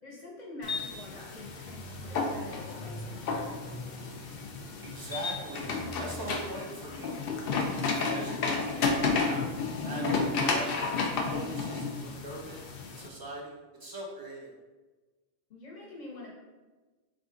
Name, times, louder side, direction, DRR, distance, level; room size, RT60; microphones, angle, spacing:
voice 1, 0.0-3.8 15.5-16.3, left 2 dB, 45° left, -5 dB, 1.2 m, -46 dB
sound 1, 0.6-13.1, left 4 dB, 65° left, 0.7 m, -32 dB
sound 2, 1.4-6.4, equal, 20° left, 1.3 m, -46 dB
voice 2, 4.8-7.2 7.7-12.6 13.0-14.5, right 1 dB, 25° right, -1 dB, 0.6 m, -42 dB
4.4 x 2.5 x 3.6 m, 1.2 s
omnidirectional pair, 1.1 m